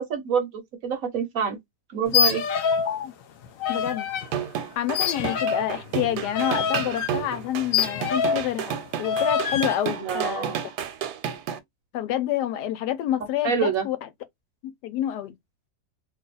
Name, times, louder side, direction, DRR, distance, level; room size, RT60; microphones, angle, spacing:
voice 1, 0.0-1.6 1.9-2.4 10.0-10.6 13.4-13.9, right 6 dB, 65° right, 1.0 m, -26 dB
sound 1, 2.0-2.9 3.2-4.3 4.9-8.5 9.0-9.8, left 7 dB, 70° left, 0.8 m, -26 dB
voice 2, 3.7-4.1 4.8-10.5 11.9-14.1 14.6-15.3, left 11 dB, 85° left, 1.2 m, -28 dB
sound 2, 4.2-11.6, right 9 dB, 90° right, 1.2 m, -31 dB
2.7 x 2.4 x 3.9 m
omnidirectional pair, 1.7 m